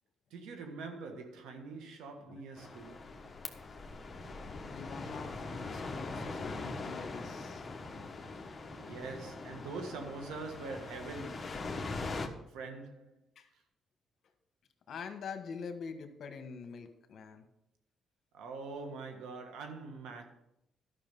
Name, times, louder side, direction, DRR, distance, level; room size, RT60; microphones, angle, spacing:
voice 1, 0.3-3.1 8.8-11.7 12.5-13.1 18.3-20.2, right 4 dB, 90° right, 1.5 m, -44 dB
sound 1, 2.6-12.3, left 3 dB, 30° left, 1.2 m, -42 dB
voice 2, 4.7-7.6 13.3-13.5 14.9-17.4, left 5 dB, 60° left, 1.4 m, -45 dB
11.5 x 6.0 x 5.4 m
cardioid pair, 90°, 0 cm